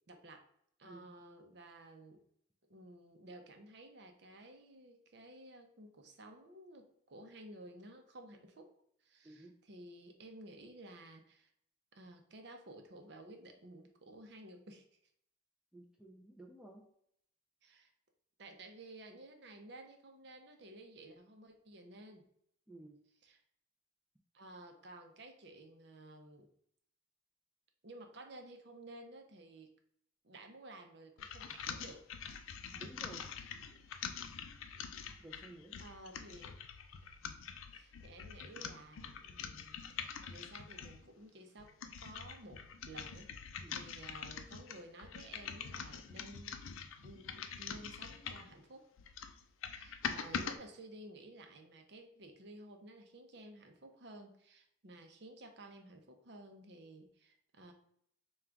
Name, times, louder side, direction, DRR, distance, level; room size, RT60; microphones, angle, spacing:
voice 1, 0.1-0.4 0.8-2.2 2.7-8.7 9.0-11.5 11.9-14.9 17.6-17.9 18.4-22.2 23.2-23.4 24.3-26.5 27.8-29.7 30.2-32.1 35.0-35.3 35.8-36.6 37.7-41.7 42.0-43.3 43.7-46.6 47.0-48.9 49.7-57.7, right 1 dB, 55° right, 4 dB, 0.6 m, -54 dB
voice 2, 15.7-16.9 22.7-23.0 32.7-33.3 35.2-35.8 43.6-43.9, right 2 dB, 5° right, 0 dB, 0.4 m, -54 dB
sound 1, 31.2-41.0 41.6-48.5 49.0-50.6, left 7 dB, 85° left, 0.4 m, -45 dB
3.7 x 2.3 x 4.4 m, 0.69 s
head